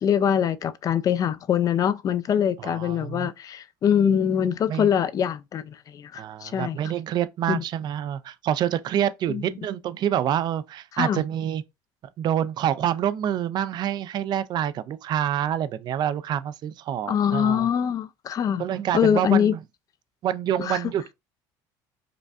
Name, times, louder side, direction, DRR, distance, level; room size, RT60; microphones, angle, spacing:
voice 1, 0.0-6.8 7.5-7.6 9.3-9.4 11.0-11.2 17.1-18.6 18.9-19.5 20.6-20.8, left 8 dB, 40° left, 0.4 m, -23 dB
voice 2, 2.6-3.3 4.7-4.9 6.1-11.6 12.2-17.7 18.6-19.6 20.2-21.1, right 10 dB, 45° right, 0.3 m, -27 dB
4.9 x 2.2 x 2.4 m
supercardioid pair, 105°, 10 cm